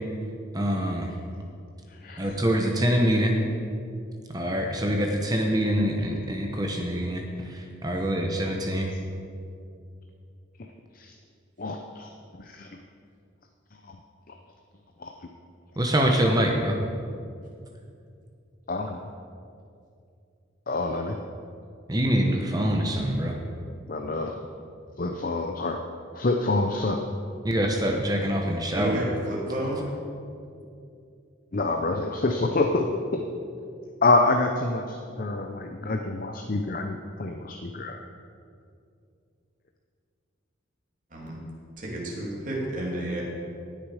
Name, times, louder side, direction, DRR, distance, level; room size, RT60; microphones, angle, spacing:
voice 1, 0.5-1.1 2.2-3.4 4.3-8.9 15.8-16.8 21.9-23.4 27.4-29.0, equal, 20° right, 2 dB, 0.9 m, -25 dB
voice 2, 1.9-2.4 10.6-10.7 10.9-11.2 11.6-12.1 12.4-12.8 13.8-14.0 14.3-14.4 15.0-15.3 18.7-19.0 20.7-21.2 23.9-24.4 25.0-25.8 26.1-27.0 31.5-32.9 33.1-33.2 34.0-38.0, left 2 dB, 45° left, 4 dB, 0.6 m, -27 dB
voice 3, 28.7-29.8 41.1-41.4 41.8-43.2, right 1 dB, 40° right, -4 dB, 2.6 m, -31 dB
17.5 x 6.6 x 4.9 m, 2.5 s
head